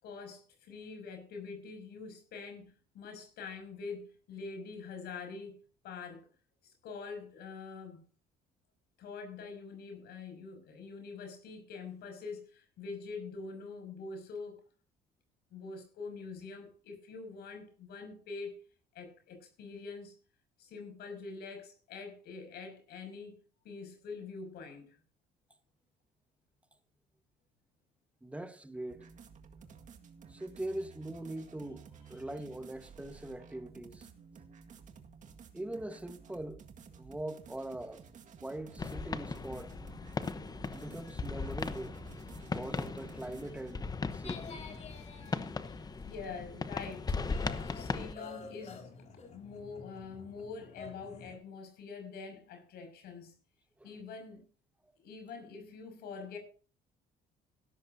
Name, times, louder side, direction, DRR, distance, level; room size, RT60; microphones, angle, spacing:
voice 1, 0.0-5.6 5.8-6.3 6.6-8.0 9.0-14.6 15.5-18.5 18.9-20.1 20.6-23.4 23.6-25.0 46.0-47.2 47.7-53.3 53.8-54.5 55.0-56.4, left 4 dB, 75° left, 6.4 m, -45 dB
voice 2, 28.2-29.1 30.3-34.1 35.5-36.6 37.0-38.0 38.4-39.8 40.7-42.0 42.4-43.9 44.1-44.7 47.5-47.7 53.8-53.9, right 1 dB, 10° right, 1.4 m, -42 dB
sound 1, 28.9-43.7, right 6 dB, 45° right, 1.9 m, -54 dB
sound 2, 38.8-48.1, left 4 dB, 25° left, 1.0 m, -38 dB
sound 3, 44.2-51.4, left 5 dB, 40° left, 3.2 m, -50 dB
17.0 x 13.0 x 2.8 m
cardioid pair, 110°, 17 cm